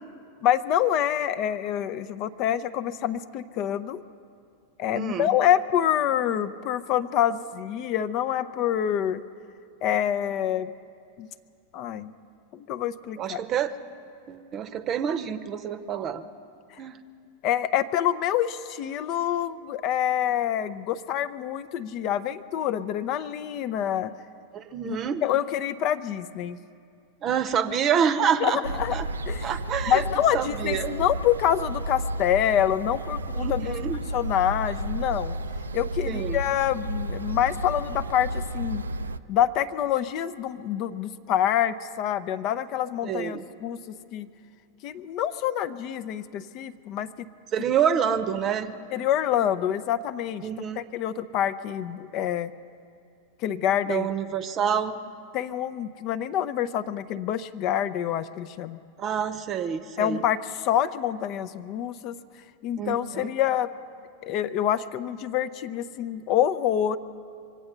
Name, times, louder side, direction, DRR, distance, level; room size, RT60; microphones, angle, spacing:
voice 1, 0.4-4.0 4.8-9.2 9.8-10.7 11.2-11.3 11.7-12.1 12.5-13.4 17.4-24.1 24.8-26.6 28.4-29.0 29.3-29.5 29.9-33.7 34.1-35.4 35.7-38.8 39.3-44.3 44.8-47.1 48.9-50.5 50.8-52.5 53.4-54.1 55.3-58.8 60.0-62.2 62.6-63.7 64.2-67.0, left 10 dB, 40° left, 13 dB, 0.5 m, -26 dB
voice 2, 4.9-5.3 13.2-13.7 14.3-16.2 16.8-17.0 24.5-25.2 27.2-28.6 28.9-29.1 29.4-30.0 30.3-31.0 33.4-34.0 36.1-36.4 43.0-43.4 47.5-48.8 50.4-50.8 53.9-55.0 59.0-60.2 62.8-63.3, right 8 dB, 30° right, 11 dB, 0.8 m, -27 dB
sound 1, 28.6-39.2, right 1 dB, 70° right, 0.4 m, -32 dB
25.0 x 8.7 x 6.7 m, 2.4 s
figure-of-eight pair, 90°, 0 cm